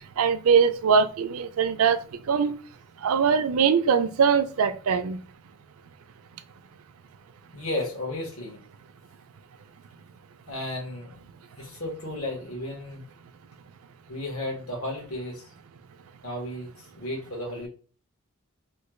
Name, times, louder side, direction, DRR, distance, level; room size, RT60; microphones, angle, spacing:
voice 1, 0.2-2.0 2.3-2.6 3.0-5.2, right 6 dB, 75° right, 0.4 m, -22 dB
voice 2, 7.5-8.6 10.5-11.1 11.6-13.0 14.1-15.4 16.2-17.7, left 1 dB, 75° left, 1.5 m, -33 dB
3.2 x 2.3 x 3.1 m
head